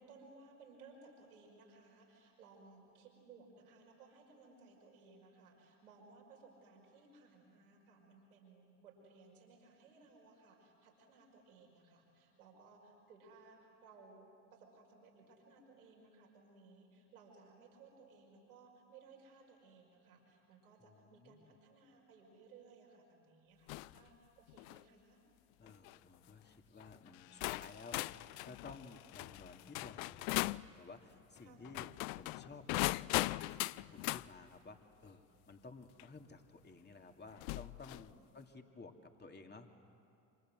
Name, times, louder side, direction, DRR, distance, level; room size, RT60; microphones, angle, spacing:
voice 1, 0.0-25.2 31.4-32.4 38.1-38.3, right 4 dB, 85° right, 0 dB, 5.6 m, -61 dB
voice 2, 20.9-21.6 25.6-39.7, left 3 dB, 25° left, 4 dB, 2.7 m, -55 dB
sound 1, 23.7-24.0 24.5-24.8 25.7-25.9 26.8-26.9 27.4-30.7 31.6-34.3 36.0-36.1 37.4-38.1, left 21 dB, 70° left, 0.6 m, -39 dB
28.5 x 26.5 x 7.7 m, 2.5 s
hypercardioid pair, 60°, 43 cm